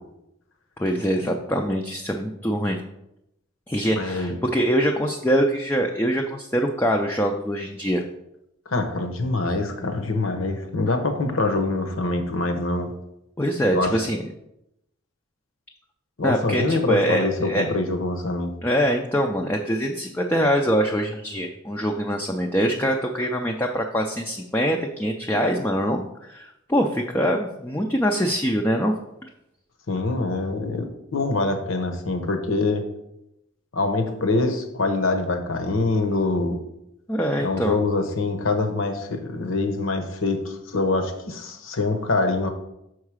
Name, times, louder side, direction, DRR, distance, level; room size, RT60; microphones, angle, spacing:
voice 1, 0.8-2.8 3.7-8.0 13.4-14.2 16.2-17.7 18.6-28.9 37.1-37.8, equal, 10° left, 2 dB, 0.4 m, -24 dB
voice 2, 3.9-4.4 8.7-12.9 13.7-13.9 16.2-18.5 29.9-32.8 33.7-36.6 37.4-42.5, left 3 dB, 75° left, 7 dB, 0.9 m, -24 dB
6.4 x 4.7 x 4.8 m, 0.85 s
head